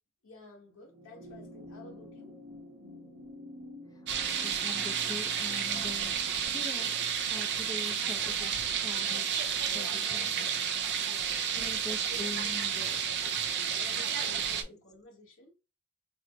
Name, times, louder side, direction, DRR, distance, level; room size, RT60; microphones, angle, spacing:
voice 1, 0.2-2.3 11.0-12.6 13.8-15.5, left 2 dB, 65° left, 1.2 m, -52 dB
sound 1, 0.8-9.5 10.7-10.8, left 1 dB, 35° right, 1.0 m, -51 dB
sound 2, 4.1-14.6, right 8 dB, 50° right, 0.5 m, -31 dB
voice 2, 4.2-6.2 6.5-6.9 7.3-8.5 8.8-9.3 9.7-10.5 11.5-13.0 14.6-14.7, left 2 dB, 15° left, 0.5 m, -43 dB
4.2 x 2.0 x 3.0 m
head